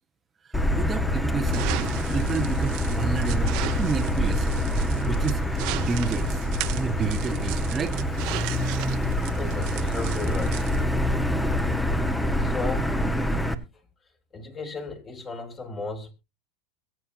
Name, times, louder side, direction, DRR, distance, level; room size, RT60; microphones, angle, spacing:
voice 1, 0.4-1.7 2.1-4.6 5.1-6.5 6.7-8.0, right 5 dB, 20° right, 1.0 m, -30 dB
Motor vehicle (road), 0.5-13.5, left 1 dB, 5° left, 1.2 m, -26 dB
sound 1, 1.5-10.8, right 15 dB, 60° right, 1.1 m, -36 dB
voice 2, 9.4-10.7 12.4-12.9 14.3-16.1, left 3 dB, 30° left, 3.1 m, -35 dB
22.5 x 7.6 x 2.7 m
supercardioid pair, 115°, 0 cm